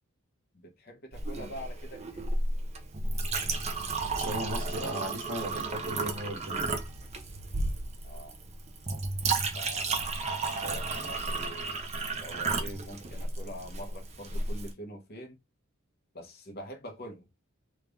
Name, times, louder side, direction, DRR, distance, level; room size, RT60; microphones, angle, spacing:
voice 1, 0.5-2.3 8.0-8.4 9.5-10.1 10.4-11.8 12.2-15.4 16.1-17.2, equal, 50° left, 1.0 m, -44 dB
Chink clink, 1.1-14.7, right 3 dB, 30° right, 0.5 m, -33 dB
voice 2, 4.2-6.7, right 1 dB, 60° right, 1.4 m, -36 dB
3.3 x 2.5 x 3.5 m
head